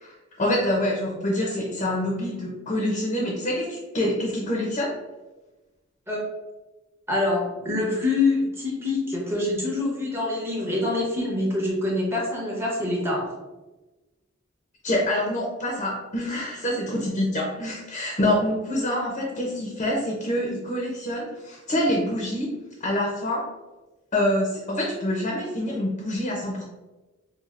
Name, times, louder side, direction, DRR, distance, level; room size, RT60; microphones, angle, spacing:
voice 1, 0.4-4.9 14.8-23.4 24.1-26.6, left 1 dB, 35° left, -3 dB, 0.6 m, -26 dB
voice 2, 7.1-13.3, left 2 dB, 10° right, -4 dB, 0.8 m, -25 dB
4.8 x 2.4 x 2.4 m, 1.1 s
head